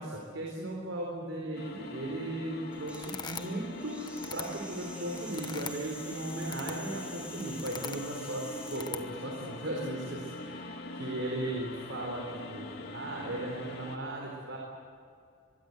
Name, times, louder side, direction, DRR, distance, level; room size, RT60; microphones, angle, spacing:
voice 1, 0.0-14.6, right 1 dB, 70° right, -1 dB, 4.4 m, -37 dB
sound 1, 1.5-14.0, left 2 dB, 55° left, 2.6 m, -43 dB
sound 2, 2.7-8.8, equal, 5° right, 4.9 m, -48 dB
sound 3, 2.9-3.7 4.1-5.8 6.3-7.0 7.4-8.1 8.7-9.1, left 5 dB, 20° left, 1.2 m, -42 dB
24.5 x 21.5 x 8.1 m, 2.4 s
head